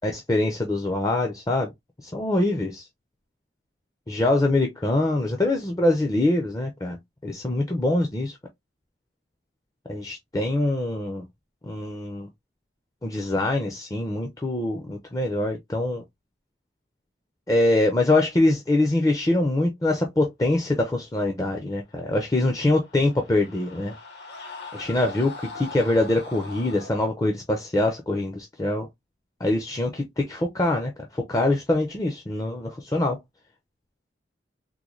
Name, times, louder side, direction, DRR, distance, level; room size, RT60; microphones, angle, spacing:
voice 1, 0.0-1.7 2.0-2.9 4.1-7.0 7.2-8.4 9.9-11.2 11.6-12.3 13.0-16.0 17.5-23.9 24.7-28.9 29.4-33.2, left 2 dB, 20° left, 0.5 m, -24 dB
sound 1, 22.6-26.9, left 3 dB, 70° left, 1.2 m, -41 dB
3.7 x 2.2 x 3.0 m
head